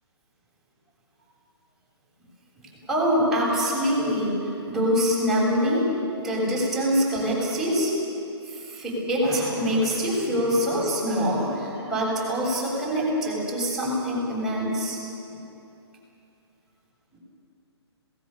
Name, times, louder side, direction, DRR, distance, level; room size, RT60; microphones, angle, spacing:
voice 1, 2.9-5.8 6.2-7.9 8.5-15.0 15.3-15.4, equal, ahead, -7 dB, 7.4 m, -24 dB
27.0 x 18.5 x 7.0 m, 2.8 s
figure-of-eight pair, 135°, 14 cm